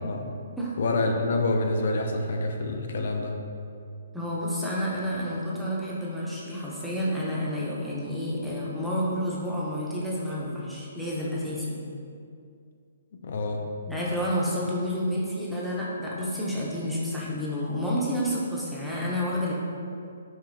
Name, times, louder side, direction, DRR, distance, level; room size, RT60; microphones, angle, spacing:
voice 1, 0.8-3.4 13.2-13.6, left 2 dB, 60° left, 3 dB, 0.4 m, -27 dB
voice 2, 4.1-11.8 13.9-19.5, equal, ahead, -7 dB, 0.5 m, -29 dB
4.9 x 2.7 x 2.6 m, 2.4 s
hypercardioid pair, 165°, 0 cm